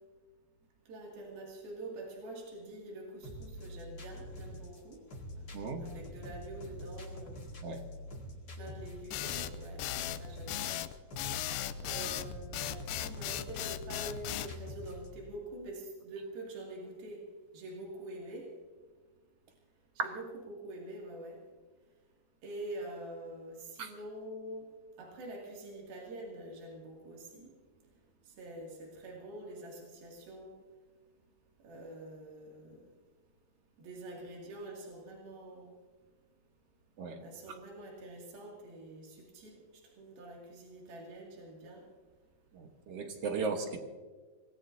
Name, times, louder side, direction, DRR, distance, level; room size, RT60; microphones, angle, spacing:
voice 1, 0.9-5.1 5.8-7.4 8.6-10.9 11.8-17.3 17.5-18.5 20.0-21.5 22.4-24.7 25.0-27.5 28.2-30.6 31.6-32.9 33.8-35.8 37.2-41.9 43.6-43.7, right 1 dB, 75° right, -2 dB, 4.3 m, -46 dB
sound 1, 3.2-15.2, left 1 dB, 30° left, 2.1 m, -46 dB
voice 2, 5.5-5.9 7.6-7.8 20.0-20.1 23.8-23.9 37.0-37.2 42.5-43.8, right 4 dB, 55° right, 4 dB, 1.8 m, -36 dB
sound 2, 9.1-14.5, left 14 dB, 80° left, 2.4 m, -37 dB
24.5 x 18.5 x 2.7 m, 1.4 s
omnidirectional pair, 4.2 m